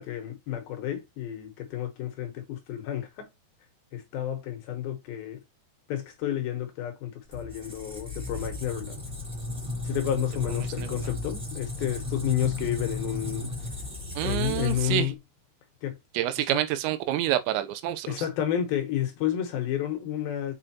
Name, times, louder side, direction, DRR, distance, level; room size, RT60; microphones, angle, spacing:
voice 1, 0.0-3.3 3.9-5.4 5.9-9.0 9.8-13.5 14.2-15.1 15.8-16.0 16.5-16.6 18.1-20.5, left 11 dB, 70° left, 2.6 m, -31 dB
Squeak, 7.3-15.2, left 3 dB, ahead, 2.3 m, -35 dB
voice 2, 10.4-11.1 14.2-15.1 16.1-18.2, right 13 dB, 90° right, 3.0 m, -28 dB
7.3 x 5.0 x 2.8 m
omnidirectional pair, 5.0 m